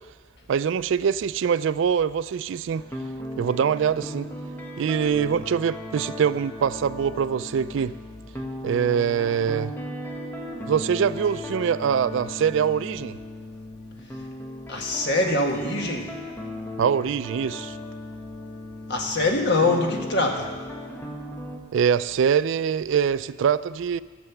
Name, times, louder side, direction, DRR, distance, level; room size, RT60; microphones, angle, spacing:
voice 1, 0.5-2.8 3.4-4.3 4.8-8.0 8.6-9.7 10.7-13.2 16.8-17.7 21.7-24.0, right 7 dB, 60° right, 16 dB, 0.3 m, -23 dB
sound 1, 2.7-21.6, left 1 dB, 10° left, 1.0 m, -37 dB
voice 2, 14.7-16.1 18.9-20.5, left 2 dB, 55° left, 2 dB, 1.6 m, -23 dB
14.0 x 6.7 x 7.1 m, 1.4 s
head